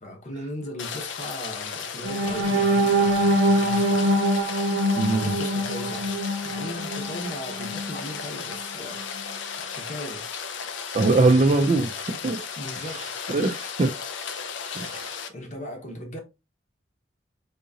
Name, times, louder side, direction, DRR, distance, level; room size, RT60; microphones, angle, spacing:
voice 1, 0.0-4.2 5.1-6.1 6.4-9.3 9.7-10.4 11.6-11.8 12.6-13.1 15.3-16.2, left 1 dB, 40° left, 0.9 m, -38 dB
Rain, 0.8-15.3, left 6 dB, 70° left, 0.5 m, -35 dB
sound 1, 2.0-8.0 8.5-8.6 9.0-9.2, right 1 dB, 85° right, 0.6 m, -24 dB
voice 2, 5.0-5.4 10.9-11.9 12.2-12.4 13.3-13.9 14.8-15.1, right 3 dB, 35° right, 0.3 m, -21 dB
3.6 x 2.8 x 2.7 m
head